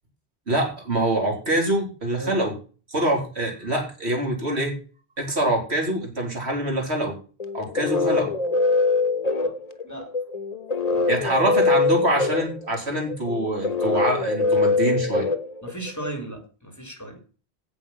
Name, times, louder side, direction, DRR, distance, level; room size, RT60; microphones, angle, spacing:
voice 1, 0.5-2.5 2.9-4.8 5.2-7.2 7.5-8.3 11.1-15.3, right 1 dB, 75° right, 1 dB, 4.1 m, -25 dB
sound 1, 7.4-16.1, left 3 dB, 40° left, 1.1 m, -23 dB
voice 2, 9.8-10.1 10.9-11.1 15.6-17.2, right 2 dB, 15° left, 5 dB, 3.7 m, -36 dB
17.0 x 6.0 x 5.8 m, 0.37 s
omnidirectional pair, 1.1 m